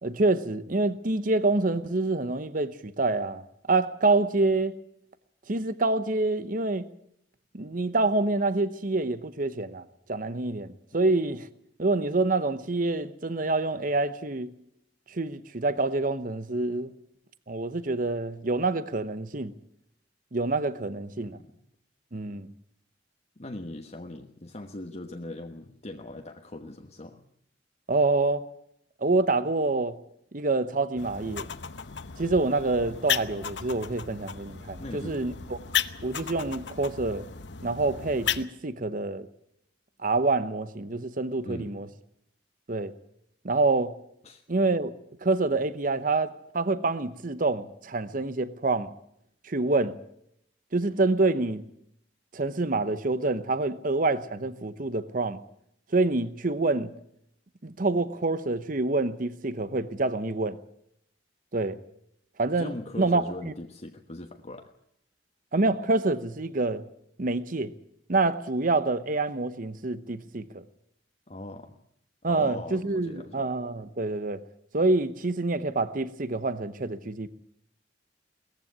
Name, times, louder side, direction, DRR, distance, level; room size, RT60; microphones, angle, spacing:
voice 1, 0.0-3.4 3.7-4.8 5.5-6.9 7.5-11.5 11.8-14.5 15.1-16.9 17.5-19.5 20.3-21.4 22.1-22.5 27.9-28.5 29.0-30.0 30.3-31.5 32.2-35.6 36.0-37.2 37.6-39.3 40.0-41.9 42.7-42.9 43.4-43.9 44.5-44.9 45.2-48.9 49.4-50.0 50.7-51.6 52.3-55.4 55.9-56.9 57.6-60.6 61.5-61.8 62.4-62.7 63.0-63.5 65.5-66.8 67.2-67.7 68.1-70.6 72.2-74.4 74.7-77.3, right 2 dB, 50° right, 0.9 m, -27 dB
voice 2, 21.2-21.6 23.4-27.2 34.8-35.3 41.4-41.8 44.2-44.4 62.5-64.7 71.3-71.8 72.3-73.4, left 1 dB, 35° left, 1.2 m, -40 dB
sound 1, 31.0-38.4, left 8 dB, 75° left, 0.9 m, -34 dB
19.0 x 15.0 x 9.6 m
head